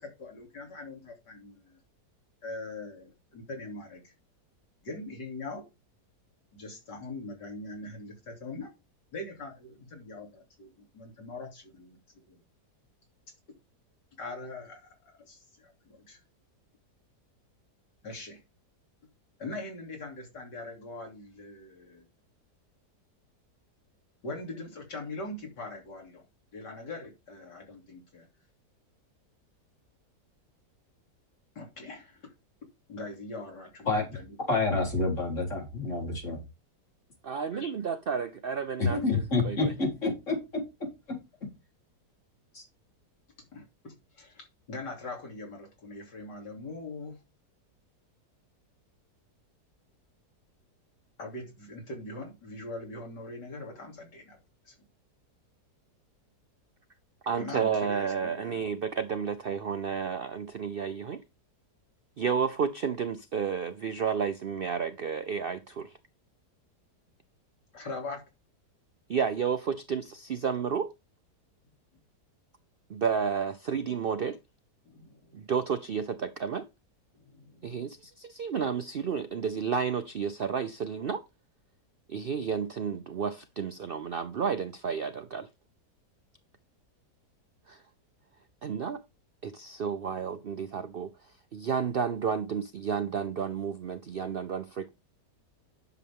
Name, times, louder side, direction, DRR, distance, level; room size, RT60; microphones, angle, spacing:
voice 1, 0.0-1.8 2.4-4.1 4.8-5.7 6.5-8.7 9.1-12.0 12.3-12.4 14.2-16.2 18.0-18.4 19.4-22.1 24.2-26.2 26.5-28.3 31.6-32.3 32.9-34.4 37.5-37.7 43.5-47.2 51.2-54.4 54.7-54.8 57.4-58.6 67.7-68.2 74.9-75.3 77.3-77.8, left 2 dB, 85° left, 3.6 m, -42 dB
voice 2, 34.5-36.4 38.8-40.4 42.5-42.6, left 3 dB, 45° left, 4.3 m, -28 dB
voice 3, 37.2-39.7 57.2-61.2 62.2-66.0 69.1-70.9 72.9-74.4 75.3-76.7 77.6-81.2 82.1-85.5 87.7-87.8 88.6-89.0 89.4-91.1 91.5-94.9, right 6 dB, 90° right, 0.5 m, -31 dB
10.5 x 6.8 x 3.6 m
omnidirectional pair, 1.8 m